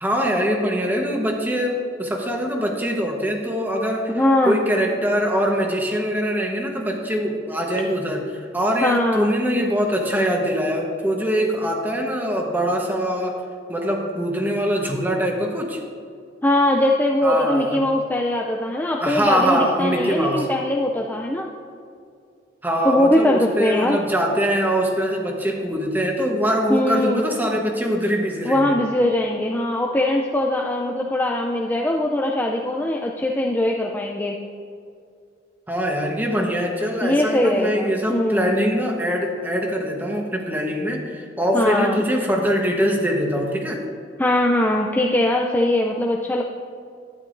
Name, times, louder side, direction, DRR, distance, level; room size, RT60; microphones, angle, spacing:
voice 1, 0.0-4.1 4.4-13.4 13.7-15.8 17.2-17.8 19.0-20.5 22.6-28.7 35.7-43.8, equal, 10° right, 1 dB, 1.1 m, -23 dB
voice 2, 4.1-4.6 8.8-9.3 16.4-21.5 22.8-24.0 26.7-27.2 28.4-34.4 37.0-38.5 41.5-42.0 44.2-46.4, left 1 dB, 10° left, 0 dB, 0.4 m, -21 dB
12.0 x 9.6 x 2.6 m, 2.3 s
head